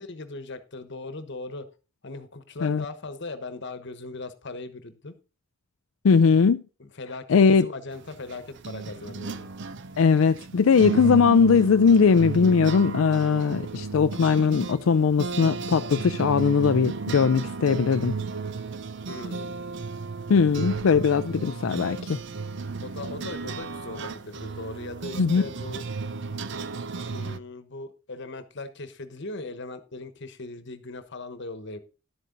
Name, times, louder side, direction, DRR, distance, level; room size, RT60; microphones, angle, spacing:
voice 1, 0.0-1.7 2.0-5.1 6.8-9.5 19.1-19.6 22.8-25.8 27.1-31.8, left 3 dB, 55° left, 1.2 m, -39 dB
voice 2, 6.0-6.6 7.3-7.6 10.0-18.1 20.3-22.2 25.2-25.4, left 5 dB, 75° left, 0.4 m, -20 dB
sound 1, 7.9-27.4, right 4 dB, 60° right, 0.6 m, -34 dB
11.5 x 8.5 x 3.9 m
head